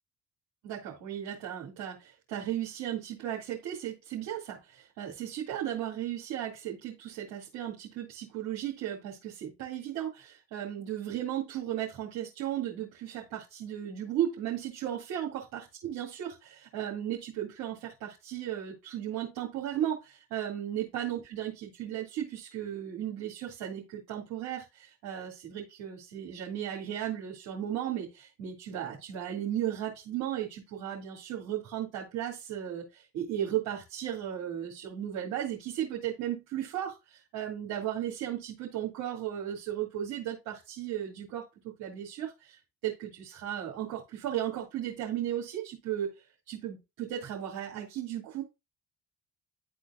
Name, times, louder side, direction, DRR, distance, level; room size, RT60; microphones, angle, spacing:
voice 1, 0.6-41.4 41.8-48.4, right 11 dB, 75° right, -3 dB, 2.2 m, -35 dB
11.5 x 3.9 x 2.4 m, 0.23 s
hypercardioid pair, 55°, 34 cm